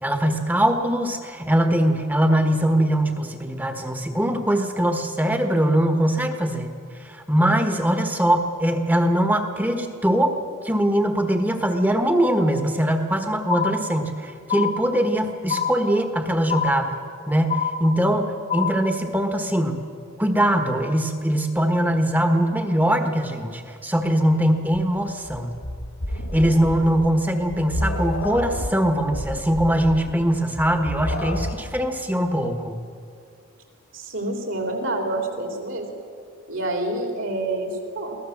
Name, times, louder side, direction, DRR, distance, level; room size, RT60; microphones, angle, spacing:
voice 1, 0.0-6.7 7.0-10.4 10.6-17.0 17.3-19.8 20.2-25.5 26.3-32.8, right 1 dB, 10° right, 5 dB, 1.4 m, -22 dB
sound 1, 13.5-14.2 14.5-15.2 15.5-16.2 16.5-17.2 17.5-18.2 18.5-19.2, left 6 dB, 35° left, 1.3 m, -27 dB
sound 2, 24.7-31.8, left 1 dB, 70° left, 2.0 m, -30 dB
voice 2, 33.9-35.9 36.5-38.2, right 2 dB, 60° right, 2 dB, 3.5 m, -27 dB
23.5 x 17.0 x 7.4 m, 2.4 s
head